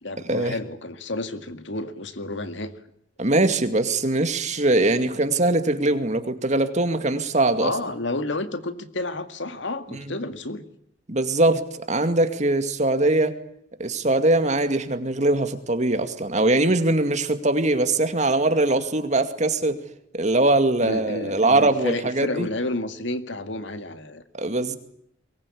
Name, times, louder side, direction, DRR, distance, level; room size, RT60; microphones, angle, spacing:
voice 1, 0.0-2.7 7.6-10.6 20.8-24.2, left 2 dB, 75° left, 10 dB, 2.0 m, -31 dB
voice 2, 3.2-7.7 9.9-10.1 11.1-13.4 13.8-19.8 20.1-22.5 24.3-24.8, right 2 dB, 40° right, 8 dB, 2.2 m, -22 dB
23.0 x 19.5 x 8.6 m, 0.72 s
head